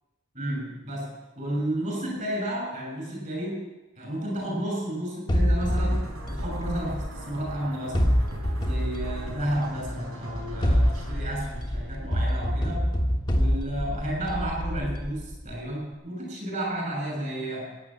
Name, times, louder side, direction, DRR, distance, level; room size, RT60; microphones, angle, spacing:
voice 1, 0.3-3.6 3.9-8.1 8.6-12.8 13.3-17.8, right 1 dB, 35° right, -1 dB, 6.5 m, -32 dB
sound 1, 5.3-7.4 7.9-9.8 10.4-15.5, equal, 20° left, 1.4 m, -26 dB
sound 2, 5.7-12.4, right 1 dB, 80° right, 4.3 m, -40 dB
15.5 x 9.9 x 7.5 m, 1.1 s
head